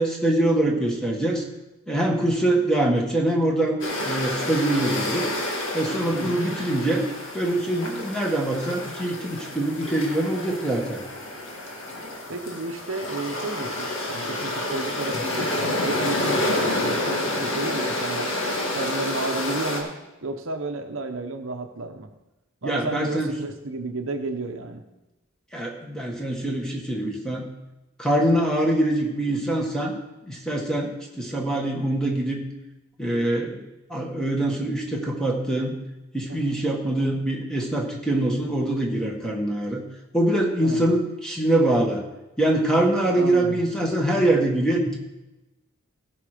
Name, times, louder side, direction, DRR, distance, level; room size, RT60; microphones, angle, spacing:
voice 1, 0.0-1.4 1.9-3.8 4.0-5.3 5.7-7.0 7.3-11.0 22.6-23.3 25.5-27.5 28.0-29.9 30.2-32.4 33.0-33.6 33.9-35.7 36.1-39.8 40.1-42.0 42.4-45.0, right 1 dB, 5° left, -1 dB, 1.7 m, -24 dB
sound 1, 3.8-19.8, left 1 dB, 60° left, 2.1 m, -29 dB
voice 2, 6.1-6.4 12.3-18.3 18.7-20.0 20.2-22.1 22.6-24.9 36.3-36.6 40.6-41.0 43.1-43.6, right 3 dB, 70° right, 6 dB, 0.9 m, -32 dB
17.0 x 6.1 x 5.1 m, 1.0 s
head